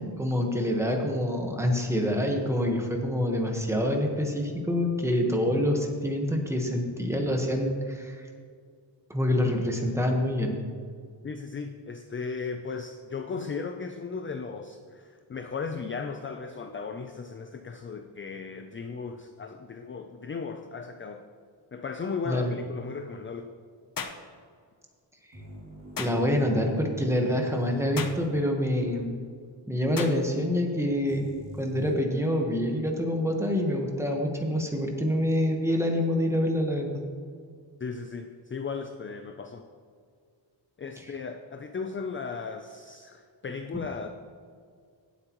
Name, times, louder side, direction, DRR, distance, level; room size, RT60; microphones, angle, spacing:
voice 1, 0.0-8.3 9.1-10.6 22.3-22.5 26.0-29.2 29.7-31.3 31.5-37.1, left 1 dB, 5° right, 1 dB, 1.2 m, -26 dB
voice 2, 11.2-21.2 21.7-23.5 37.8-39.7 40.8-44.1, left 5 dB, 30° left, 6 dB, 0.4 m, -36 dB
sound 1, 24.0-24.2 26.0-26.2 28.0-28.2 30.0-30.2, left 5 dB, 45° left, 0.8 m, -34 dB
sound 2, 25.3-29.1 29.4-29.5 31.1-31.9, equal, 40° right, 2.4 m, -44 dB
16.5 x 8.1 x 3.0 m, 2.1 s
wide cardioid pair, 165°, 45 cm